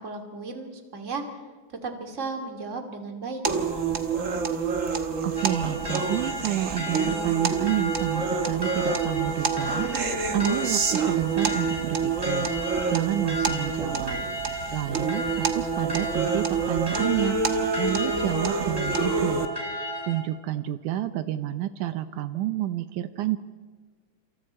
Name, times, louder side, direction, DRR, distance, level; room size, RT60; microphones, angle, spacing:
voice 1, 0.0-1.4 1.8-3.4 15.2-15.4, right 3 dB, 25° right, 4 dB, 2.5 m, -35 dB
sound 1, 3.4-19.5, right 5 dB, 50° right, 0.9 m, -27 dB
voice 2, 5.2-9.9 10.3-12.6 12.9-14.2 14.7-17.4 17.8-19.5 20.0-23.4, right 13 dB, 80° right, 11 dB, 2.2 m, -29 dB
sound 2, 5.4-20.2, equal, 5° right, 3.3 m, -34 dB
28.0 x 28.0 x 4.4 m, 1.4 s
omnidirectional pair, 3.6 m